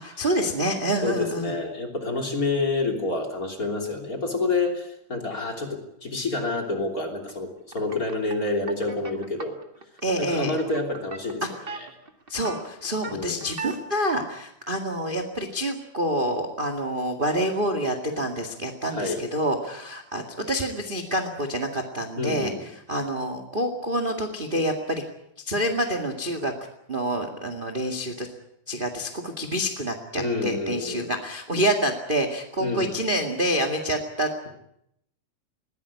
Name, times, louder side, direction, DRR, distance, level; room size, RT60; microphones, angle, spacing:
voice 1, 0.0-1.6 10.0-10.5 12.3-22.5 22.9-25.0 25.5-26.5 26.9-28.3 28.7-34.3, right 1 dB, 25° right, 5 dB, 1.1 m, -27 dB
voice 2, 1.0-9.6 10.2-11.9 13.1-13.4 18.9-19.2 22.2-22.6 30.2-31.1 32.6-32.9, left 3 dB, 25° left, 3 dB, 3.2 m, -28 dB
sound 1, 7.7-13.8, right 4 dB, 70° right, 0.5 m, -38 dB
21.0 x 17.0 x 9.6 m, 0.77 s
omnidirectional pair, 4.4 m